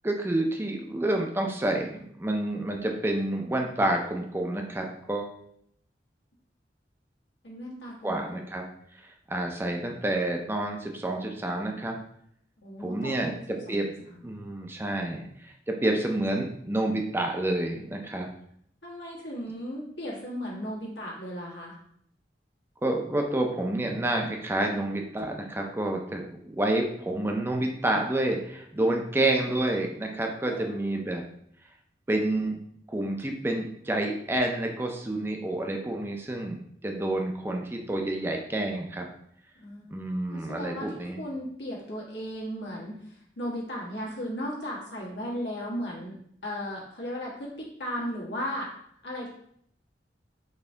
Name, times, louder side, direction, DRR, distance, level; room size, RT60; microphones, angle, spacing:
voice 1, 0.0-5.4 8.0-8.6 9.3-12.0 12.8-13.3 13.7-13.9 14.2-18.3 22.8-31.2 32.1-32.6 32.9-39.1 39.9-41.2, right 1 dB, 15° right, 2 dB, 0.5 m, -29 dB
voice 2, 7.4-8.4 12.6-14.3 18.1-18.3 18.8-21.7 30.4-30.9 39.5-39.9 40.3-46.2 46.4-48.7 49.0-49.3, equal, 80° left, -4 dB, 1.4 m, -36 dB
4.3 x 2.7 x 3.4 m, 0.68 s
head